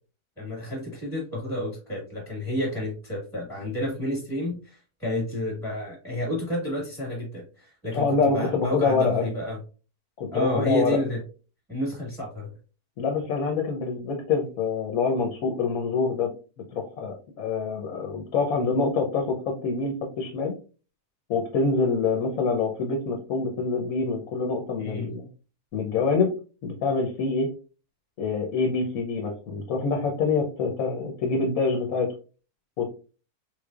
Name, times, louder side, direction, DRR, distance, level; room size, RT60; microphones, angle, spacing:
voice 1, 0.4-9.6 10.3-11.2 11.7-12.5 24.8-25.1, equal, ahead, -4 dB, 1.2 m, -30 dB
voice 2, 7.9-9.3 10.2-11.0 13.0-16.3 16.7-20.5 21.3-25.3 25.7-26.3 26.6-27.5 28.2-32.1 32.8-32.9, left 4 dB, 65° left, 1 dB, 1.1 m, -26 dB
3.8 x 3.3 x 2.3 m, 0.36 s
omnidirectional pair, 1.7 m